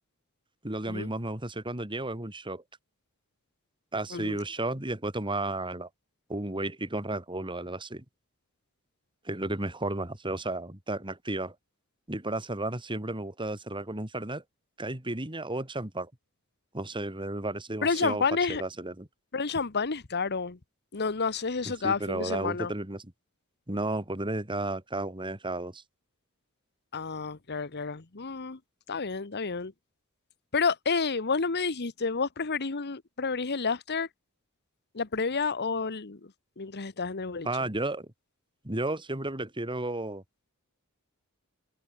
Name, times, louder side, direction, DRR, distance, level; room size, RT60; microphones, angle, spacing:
voice 1, 0.6-2.6 3.9-5.9 6.3-8.0 9.2-11.5 12.1-14.4 14.8-16.1 16.7-18.2 18.5-19.1 21.6-23.0 23.7-25.8 37.4-38.1 38.6-40.2, right 2 dB, 25° right, 3.2 m, -33 dB
voice 2, 17.8-18.6 19.3-20.6 20.9-22.7 26.9-28.6 28.9-29.7 30.5-34.1 34.9-36.2 36.6-37.5, left 4 dB, 50° left, 1.2 m, -30 dB
head